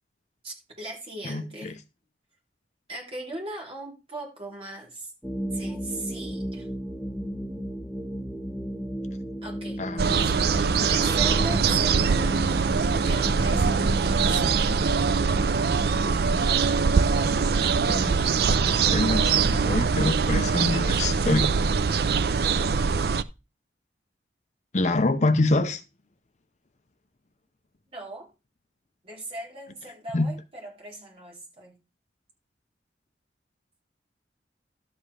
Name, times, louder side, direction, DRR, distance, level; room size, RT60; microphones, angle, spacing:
voice 1, 0.4-1.8 2.9-5.1 5.5-6.7 9.4-9.8 10.1-10.4 10.8-12.4 13.0-14.7 27.9-28.3 29.0-31.8, right 2 dB, 30° right, 3.4 m, -38 dB
voice 2, 1.2-1.8 9.8-10.1 17.9-18.3 18.6-21.5 24.7-25.8 30.1-30.3, left 2 dB, 40° left, 0.6 m, -26 dB
sound 1, 5.2-19.6, right 1 dB, ahead, 0.7 m, -35 dB
Campo pajaros sur de Chile, 10.0-23.2, right 5 dB, 60° right, 0.5 m, -23 dB
12.5 x 7.7 x 3.3 m
head